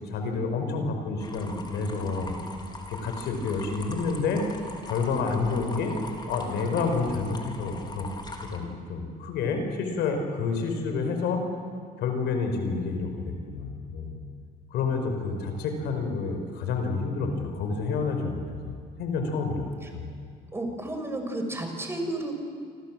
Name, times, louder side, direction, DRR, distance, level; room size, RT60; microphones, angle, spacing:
voice 1, 0.1-2.4 2.9-4.5 4.9-6.0 6.3-8.1 8.4-11.4 12.0-14.2 14.7-18.7 19.0-19.7 19.9-20.1, left 4 dB, 80° left, 5 dB, 5.2 m, -29 dB
sound 1, 1.2-8.6, left 2 dB, 25° left, 4.0 m, -41 dB
voice 2, 20.5-22.3, right 1 dB, 15° right, 4 dB, 5.7 m, -32 dB
29.0 x 25.0 x 7.7 m, 2.2 s
cardioid pair, 110°, 17 cm